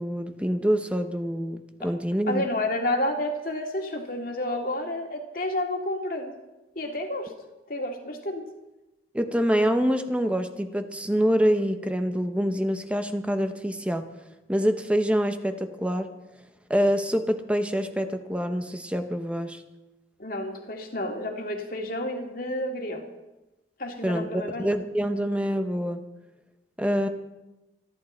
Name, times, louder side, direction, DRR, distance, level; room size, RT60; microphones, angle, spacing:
voice 1, 0.0-2.4 9.1-14.1 14.5-16.1 16.7-19.6 24.0-26.0 26.8-27.1, equal, 5° right, 7 dB, 0.8 m, -26 dB
voice 2, 2.3-6.3 6.8-7.3 7.7-8.5 20.2-23.0 23.8-24.7, left 1 dB, 50° left, 3 dB, 2.2 m, -30 dB
26.5 x 11.5 x 4.4 m, 1.0 s
head